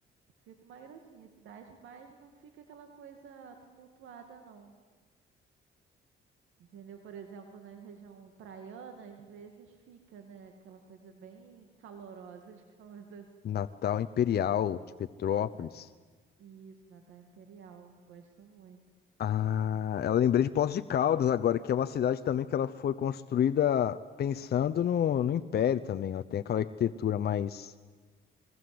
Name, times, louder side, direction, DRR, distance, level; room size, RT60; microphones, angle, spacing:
voice 1, 0.4-4.7 6.6-13.6 15.6-15.7 16.4-18.8, right 6 dB, 80° right, 5 dB, 2.3 m, -50 dB
voice 2, 13.4-14.8 15.2-15.9 19.2-27.7, left 9 dB, 55° left, 9 dB, 0.7 m, -28 dB
25.5 x 22.0 x 7.9 m, 1.4 s
cardioid pair, 90°, 20 cm